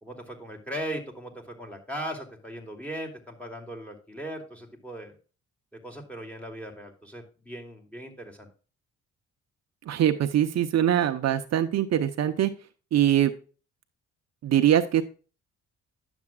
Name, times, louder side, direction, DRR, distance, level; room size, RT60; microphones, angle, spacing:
voice 1, 0.0-5.2 5.8-8.5, equal, 5° left, 1 dB, 2.6 m, -38 dB
voice 2, 9.9-12.5 12.9-13.3 14.4-15.0, right 11 dB, 60° right, 7 dB, 0.8 m, -22 dB
10.5 x 7.2 x 2.3 m, 0.36 s
cardioid pair, 90°, 30 cm